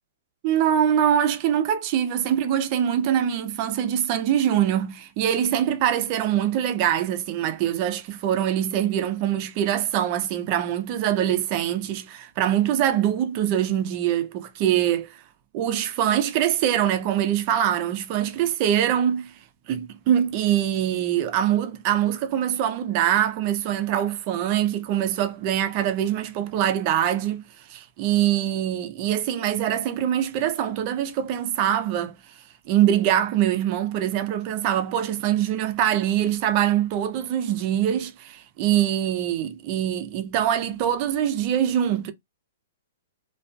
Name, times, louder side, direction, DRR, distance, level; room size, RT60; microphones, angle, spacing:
voice 1, 0.4-15.2 15.5-19.3 19.7-27.4 27.7-32.2 32.7-42.1, right 10 dB, 35° right, 0.4 m, -23 dB
2.3 x 2.2 x 2.4 m
hypercardioid pair, 155°, 0 cm